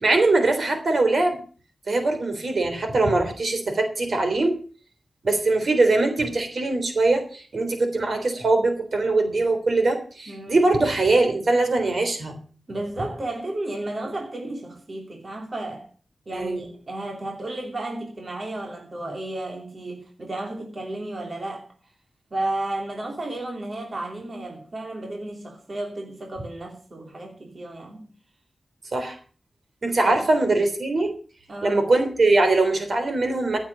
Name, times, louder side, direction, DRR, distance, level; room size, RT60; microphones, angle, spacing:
voice 1, 0.0-1.4 1.9-4.5 5.2-12.4 16.3-16.7 28.9-29.2 29.8-31.1 31.6-33.6, right 2 dB, 60° right, 3.4 m, -22 dB
voice 2, 10.3-10.6 12.7-15.9 16.3-21.7 22.3-28.1 30.0-30.2 31.5-31.9, right 2 dB, 45° right, 3.0 m, -33 dB
15.0 x 7.4 x 7.2 m
wide cardioid pair, 80°, 0 cm